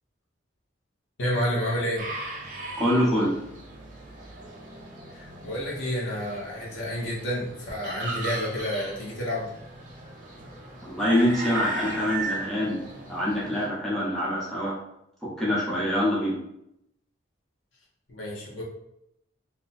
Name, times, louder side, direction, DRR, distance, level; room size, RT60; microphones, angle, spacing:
voice 1, 1.2-2.0 5.2-9.5 18.1-18.6, equal, 80° left, -3 dB, 1.0 m, -29 dB
sound 1, 2.0-13.7, right 3 dB, 45° right, 0.8 m, -38 dB
voice 2, 2.8-3.4 10.8-12.8 13.1-14.7 15.2-16.4, equal, ahead, -8 dB, 0.9 m, -25 dB
2.8 x 2.2 x 4.1 m, 0.79 s
head